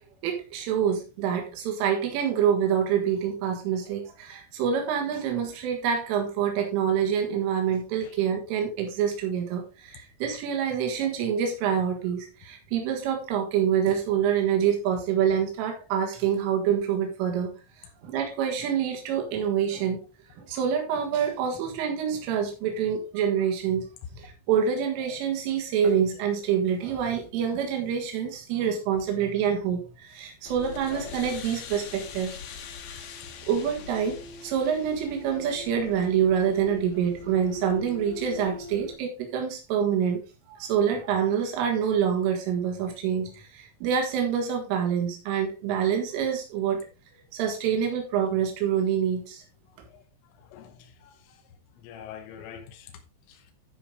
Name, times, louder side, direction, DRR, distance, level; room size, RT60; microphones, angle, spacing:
voice 1, 0.2-20.0 20.3-23.9 24.1-32.4 33.4-46.8 47.3-49.4, right 8 dB, 80° right, 3 dB, 4.3 m, -26 dB
sound 1, 30.5-39.0, left 4 dB, 65° left, 2.6 m, -41 dB
voice 2, 50.5-51.2 51.8-52.9 53.3-53.4, left 8 dB, 90° left, 4 dB, 3.7 m, -45 dB
14.0 x 5.0 x 3.8 m, 0.30 s
omnidirectional pair, 5.6 m